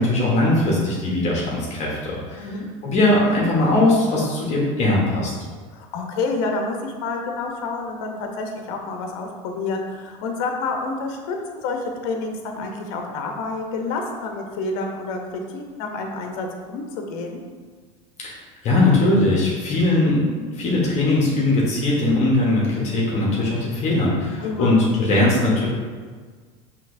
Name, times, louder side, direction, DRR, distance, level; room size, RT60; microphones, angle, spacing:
voice 1, 0.0-2.5 2.8-5.3 18.2-18.4 18.6-25.7, left 2 dB, 40° left, -4 dB, 1.1 m, -20 dB
voice 2, 5.7-17.4 24.4-24.8, left 3 dB, 65° left, 2 dB, 0.8 m, -29 dB
5.7 x 2.9 x 2.6 m, 1.5 s
supercardioid pair, 110°, 17 cm